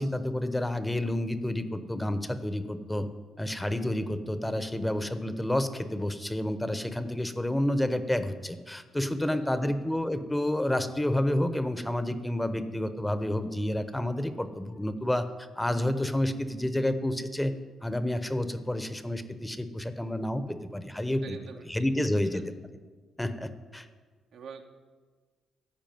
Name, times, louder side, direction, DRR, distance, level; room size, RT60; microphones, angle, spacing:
voice 1, 0.0-3.1 3.4-15.3 15.6-17.5 17.8-21.4 21.6-22.5 23.2-23.9, left 1 dB, 10° left, 11 dB, 0.8 m, -29 dB
voice 2, 8.9-9.5 21.1-21.6 21.9-22.4 24.3-24.6, right 5 dB, 75° right, 4 dB, 1.2 m, -46 dB
14.5 x 4.9 x 9.2 m, 1.4 s
cardioid pair, 90°, 0 cm